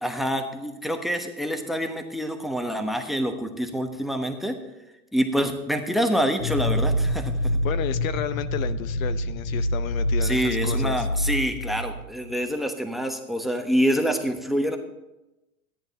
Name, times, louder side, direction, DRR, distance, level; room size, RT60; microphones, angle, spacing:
voice 1, 0.0-4.6 5.1-7.6 10.2-14.8, equal, ahead, 6 dB, 1.1 m, -26 dB
sound 1, 6.4-12.3, left 1 dB, 85° left, 2.3 m, -26 dB
voice 2, 7.6-11.1, left 11 dB, 65° left, 13 dB, 0.7 m, -32 dB
13.5 x 10.5 x 4.1 m, 0.99 s
hypercardioid pair, 105°, 43 cm